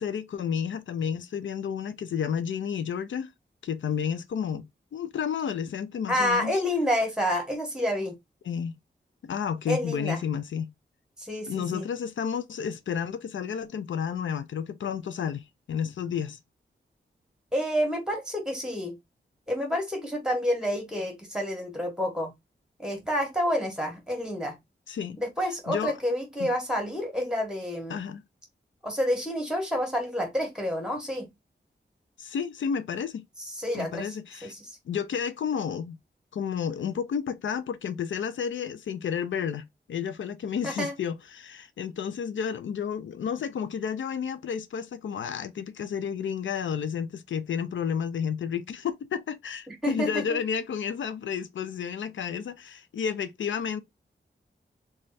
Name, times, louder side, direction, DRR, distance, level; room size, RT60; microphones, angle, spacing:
voice 1, 0.0-3.3 3.6-6.6 8.5-8.8 9.2-10.7 11.5-16.4 24.9-25.2 25.7-26.0 26.4-26.5 27.9-28.2 32.2-33.2 33.7-34.5 34.9-36.0 36.3-53.8, left 7 dB, 85° left, 0.4 m, -31 dB
voice 2, 6.1-8.1 9.7-10.2 11.2-11.8 17.5-18.9 19.5-22.3 22.8-24.5 25.2-28.0 28.8-31.3 33.4-34.2 34.4-34.8 40.6-40.9 49.7-50.2, equal, 5° right, 1.5 m, -29 dB
3.1 x 2.4 x 4.0 m
wide cardioid pair, 80°, 19 cm